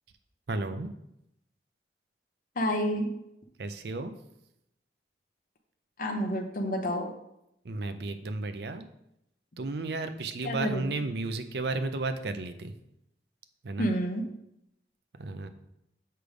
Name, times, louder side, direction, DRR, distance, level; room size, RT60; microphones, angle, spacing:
voice 1, 0.5-0.9 3.6-4.1 7.6-8.8 9.6-12.7 13.6-13.9 15.2-15.5, right 3 dB, 65° right, 10 dB, 0.5 m, -33 dB
voice 2, 2.6-3.1 6.0-7.1 10.4-10.9 13.8-14.2, equal, 50° left, 3 dB, 0.8 m, -29 dB
6.8 x 3.3 x 5.0 m, 0.81 s
head